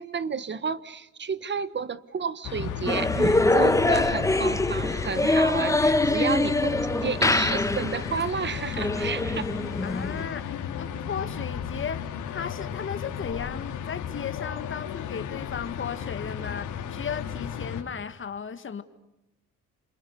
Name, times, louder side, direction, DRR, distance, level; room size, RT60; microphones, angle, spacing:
voice 1, 0.0-9.5, right 6 dB, 35° right, 16 dB, 1.3 m, -31 dB
sound 1, 2.4-17.8, left 8 dB, 85° left, 3.7 m, -34 dB
sound 2, 2.9-10.2, left 2 dB, 10° left, 1.2 m, -24 dB
voice 2, 9.8-18.8, left 6 dB, 40° left, 10 dB, 1.9 m, -35 dB
28.5 x 27.0 x 6.7 m, 0.90 s
cardioid pair, 90°, 30 cm